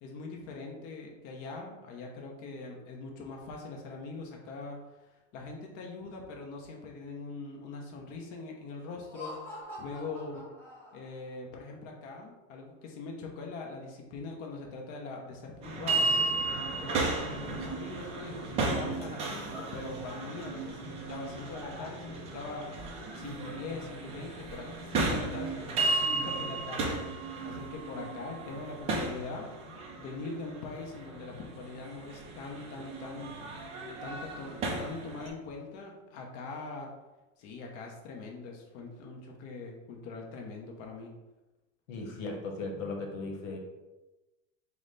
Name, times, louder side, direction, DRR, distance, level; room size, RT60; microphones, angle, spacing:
voice 1, 0.0-9.4 9.8-10.5 10.9-16.1 16.8-29.5 30.0-33.4 34.0-36.9 37.4-41.1, left 3 dB, 40° left, 0 dB, 0.6 m, -42 dB
Laughter, 8.9-11.3, left 1 dB, 5° left, 0.9 m, -45 dB
sound 1, 15.6-35.3, right 3 dB, 20° right, 0.3 m, -34 dB
voice 2, 41.9-43.6, left 3 dB, 85° left, 2 dB, 1.0 m, -37 dB
4.8 x 2.1 x 3.8 m, 1.1 s
supercardioid pair, 155°, 38 cm